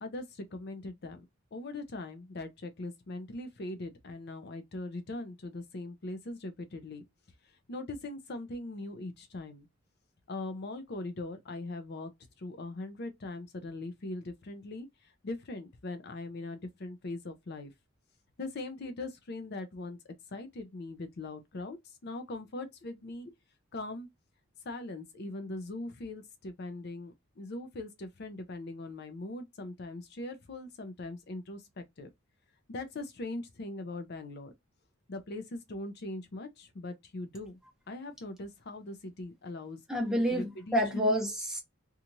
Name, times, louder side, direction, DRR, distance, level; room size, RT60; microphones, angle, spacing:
voice 1, 0.0-1.2 1.5-7.0 7.4-9.7 10.3-12.1 12.4-17.7 18.4-23.3 23.7-24.1 24.6-32.1 32.7-34.5 35.1-37.6 37.9-39.8 40.3-41.1, left 2 dB, 50° left, 0.5 m, -41 dB
voice 2, 39.9-41.6, equal, 5° right, 0.7 m, -29 dB
2.9 x 2.4 x 2.5 m
head